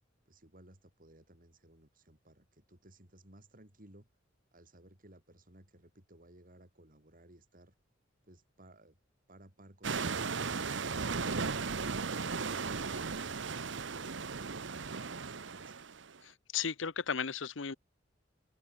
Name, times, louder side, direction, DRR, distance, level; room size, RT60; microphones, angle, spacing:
voice 1, 0.3-4.1 4.5-7.7 8.2-9.0 14.9-15.9, right 1 dB, 45° right, 5.9 m, -60 dB
sound 1, 9.8-16.2, right 4 dB, 70° right, 1.0 m, -36 dB
voice 2, 16.2-17.7, left 6 dB, 75° left, 0.9 m, -35 dB
head